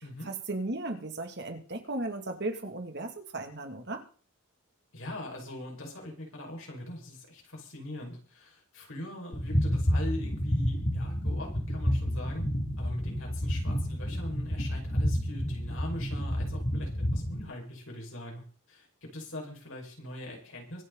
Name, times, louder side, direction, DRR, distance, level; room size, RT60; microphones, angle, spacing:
voice 1, 0.2-4.0, right 2 dB, 50° right, 5 dB, 2.5 m, -36 dB
voice 2, 4.9-12.4 12.8-20.8, left 1 dB, 65° left, 0 dB, 5.7 m, -42 dB
sound 1, 9.3-17.4, equal, 35° left, 2.8 m, -30 dB
24.0 x 8.9 x 4.1 m, 0.39 s
head